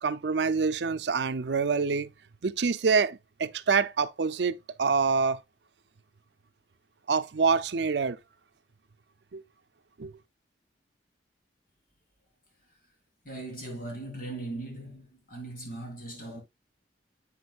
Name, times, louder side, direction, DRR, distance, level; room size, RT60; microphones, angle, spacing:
voice 1, 0.0-2.1 2.4-5.4 7.1-8.2 9.3-9.4 10.0-10.1, right 5 dB, 75° right, 0.5 m, -26 dB
voice 2, 13.2-16.4, right 2 dB, 50° left, 3.7 m, -39 dB
8.4 x 6.2 x 2.4 m
head